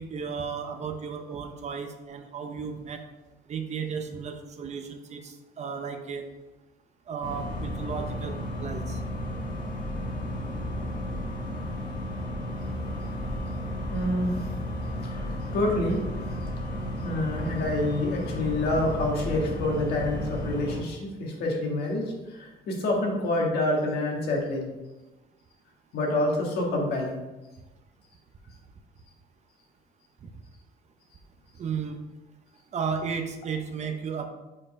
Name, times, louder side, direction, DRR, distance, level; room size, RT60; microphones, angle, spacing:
voice 1, 0.0-3.0 3.5-6.3 7.1-9.0 30.2-30.3 31.6-32.0 32.7-34.3, right 6 dB, 40° right, 6 dB, 0.7 m, -34 dB
sound 1, 7.2-20.8, equal, 50° left, 1.9 m, -33 dB
voice 2, 13.9-14.5 15.0-16.0 17.0-24.7 25.9-27.2, left 1 dB, 75° left, -1 dB, 1.8 m, -27 dB
5.4 x 4.4 x 4.8 m, 1.1 s
cardioid pair, 110°, 17 cm